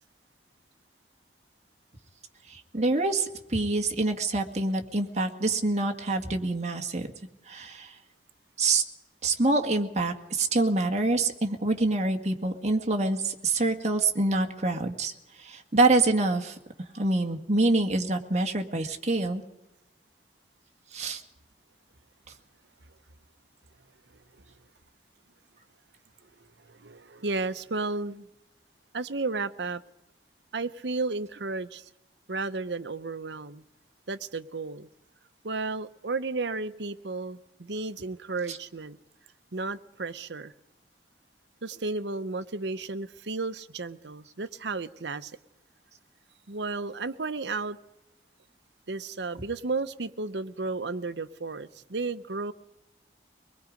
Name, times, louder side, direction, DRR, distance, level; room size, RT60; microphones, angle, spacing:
voice 1, 2.5-7.1 7.5-8.0 8.6-8.8 9.2-15.1 15.4-16.6 16.9-19.4 20.9-21.2 38.5-38.6, right 2 dB, 40° right, 4 dB, 1.9 m, -26 dB
voice 2, 26.4-28.3 28.9-29.8 30.5-31.9 32.3-33.6 34.1-34.9 35.4-39.0 39.5-40.5 41.6-45.3 46.5-47.8 48.9-52.5, right 3 dB, 80° right, 13 dB, 0.9 m, -33 dB
24.0 x 21.0 x 5.2 m, 0.89 s
head